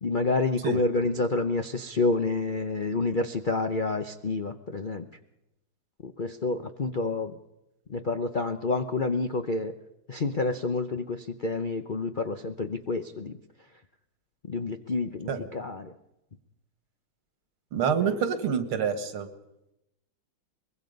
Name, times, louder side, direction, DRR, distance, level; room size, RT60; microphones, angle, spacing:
voice 1, 0.0-5.1 6.0-7.3 7.9-9.7 10.1-13.4 14.5-15.9, left 3 dB, 80° left, 8 dB, 0.4 m, -28 dB
voice 2, 17.7-19.3, right 7 dB, 90° right, 9 dB, 2.5 m, -27 dB
23.5 x 21.0 x 5.3 m, 0.88 s
omnidirectional pair, 2.3 m